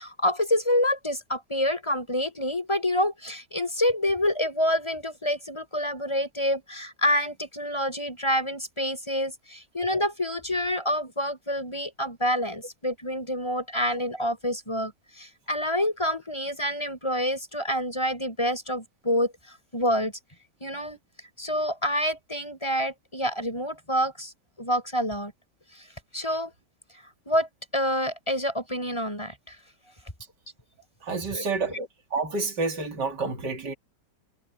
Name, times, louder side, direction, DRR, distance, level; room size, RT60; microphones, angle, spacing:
voice 1, 0.0-19.3 19.7-20.1 20.6-21.0 21.4-24.3 24.6-25.3 26.1-26.5 27.3-29.5 31.3-31.8, equal, 15° left, 7.9 m, -27 dB
voice 2, 31.0-33.7, right 3 dB, 75° right, 3.5 m, -29 dB
omnidirectional pair, 1.8 m